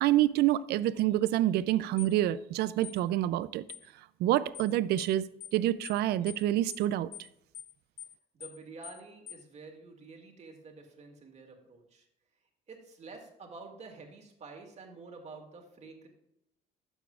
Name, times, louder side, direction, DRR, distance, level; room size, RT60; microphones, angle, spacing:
voice 1, 0.0-3.6 4.2-5.2 5.5-7.1, right 14 dB, 75° right, 0.4 m, -27 dB
sound 1, 2.0-2.1 2.8-3.0 3.7-3.9 4.5-4.7 5.0-5.1 5.4-5.6 5.8-6.0 6.3-6.4 6.7-6.9 7.1-7.3 7.5-7.7 8.0-8.1 8.4-8.6 8.8-9.0 9.3-9.4, left 10 dB, 45° left, 1.5 m, -45 dB
voice 2, 8.3-12.1 12.7-16.1, right 4 dB, 40° right, 2.2 m, -49 dB
12.5 x 7.2 x 2.4 m
cardioid pair, 110°, 17 cm